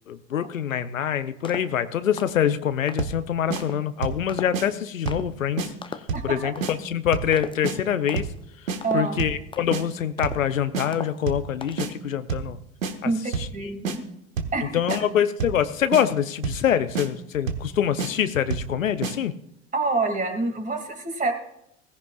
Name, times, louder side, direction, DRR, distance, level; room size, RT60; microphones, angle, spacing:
voice 1, 0.1-12.6 13.0-14.0 14.6-19.3, left 9 dB, 85° left, 12 dB, 0.8 m, -25 dB
sound 1, 1.4-1.8 2.2-2.4 2.9-3.1 3.6-3.8 4.3-4.7 5.1-5.3 5.8-6.2 6.6-6.9 7.3-7.6 8.1-8.4 8.8-9.2 9.5-9.8 10.2-10.6 10.9-11.3 11.6-11.9, left 5 dB, 15° left, 0.7 m, -37 dB
sound 2, 3.0-3.2 3.5-3.6 4.0-4.2 4.5-4.7 5.1-5.3 5.6-5.7 6.1-6.3 6.6-6.7 7.1-7.3 7.6-7.8 8.2-8.4 8.7-8.8 9.2-9.4 9.7-9.8 10.2-10.5 10.7-10.9 11.3-11.5 11.8-11.9 12.3-12.5 12.8-12.9 13.3-13.6 13.9-14.0 14.4-14.6 14.9-15.0 15.4-15.6 15.9-16.0 16.4-16.7 17.0-17.1 17.5-17.7 18.0-18.1 18.5-18.7 19.0-19.2, right 5 dB, 80° right, 1.3 m, -28 dB
voice 2, 8.8-9.2 13.0-13.2 13.5-14.0 14.5-14.7 19.7-21.3, right 3 dB, 20° right, 6 dB, 2.5 m, -26 dB
17.0 x 15.5 x 2.4 m, 0.78 s
figure-of-eight pair, 80°, 39 cm